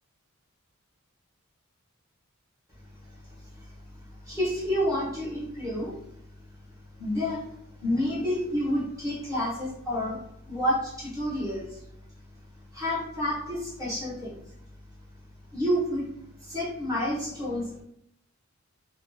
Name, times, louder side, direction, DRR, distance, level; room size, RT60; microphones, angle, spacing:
voice 1, 3.4-3.7 4.2-6.0 7.0-7.5 7.8-10.2 10.5-11.8 12.7-14.4 15.5-16.1 16.4-17.8, equal, 15° right, -7 dB, 0.8 m, -29 dB
2.3 x 2.1 x 2.5 m, 0.73 s
head